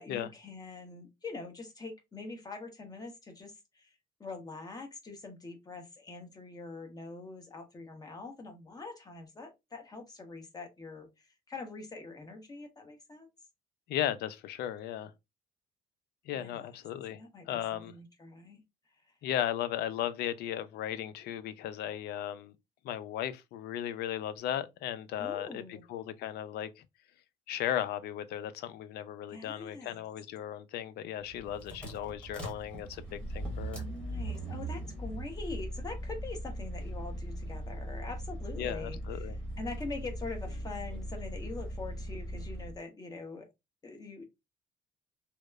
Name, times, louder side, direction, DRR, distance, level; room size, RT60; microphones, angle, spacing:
voice 1, 0.0-3.9 4.2-13.3 16.3-16.7 17.1-18.6 25.2-25.8 29.3-30.0 33.6-43.5 43.8-44.2, left 3 dB, 20° left, 0.8 m, -44 dB
voice 2, 13.9-15.1 16.3-17.2 17.5-17.9 19.2-22.5 22.8-26.8 27.5-33.8 38.6-39.3, left 11 dB, 70° left, 0.4 m, -36 dB
sound 1, 31.2-42.8, right 1 dB, 5° left, 1.1 m, -39 dB
2.8 x 2.0 x 2.3 m
cardioid pair, 110°, 17 cm